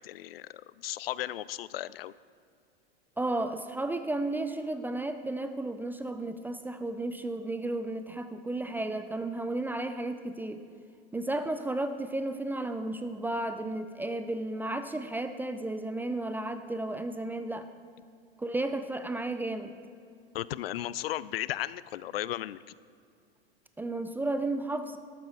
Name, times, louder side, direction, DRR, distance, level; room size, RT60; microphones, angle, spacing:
voice 1, 0.0-2.1 20.3-22.6, left 13 dB, 65° left, 18 dB, 0.5 m, -35 dB
voice 2, 3.2-10.6 11.1-17.7 18.4-19.7 23.8-25.0, right 2 dB, 5° right, 9 dB, 0.4 m, -33 dB
13.0 x 12.5 x 4.0 m, 2.3 s
hypercardioid pair, 95°, 32 cm